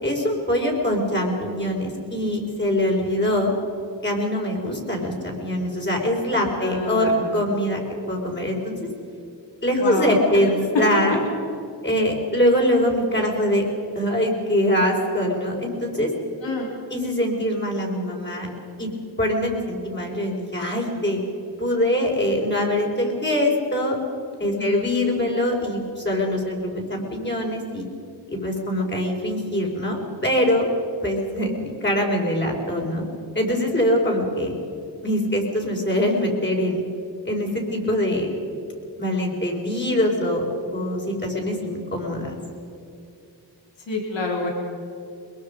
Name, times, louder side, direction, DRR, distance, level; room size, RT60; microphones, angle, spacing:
voice 1, 0.0-3.5 4.0-7.8 8.1-8.8 9.6-11.2 11.8-13.6 13.9-16.1 16.9-18.5 18.8-18.9 19.2-21.2 21.6-24.0 24.4-27.9 28.3-30.7 31.0-33.0 33.3-34.5 35.0-36.8 37.2-38.3 39.0-40.4 40.7-42.3, left 1 dB, 25° left, -1 dB, 5.0 m, -23 dB
voice 2, 6.6-7.2 9.8-10.2 10.4-10.5 16.4-16.7 24.6-24.9 43.9-44.5, left 2 dB, 75° left, -1 dB, 3.8 m, -28 dB
22.5 x 22.0 x 5.4 m, 2.6 s
wide cardioid pair, 95°, 44 cm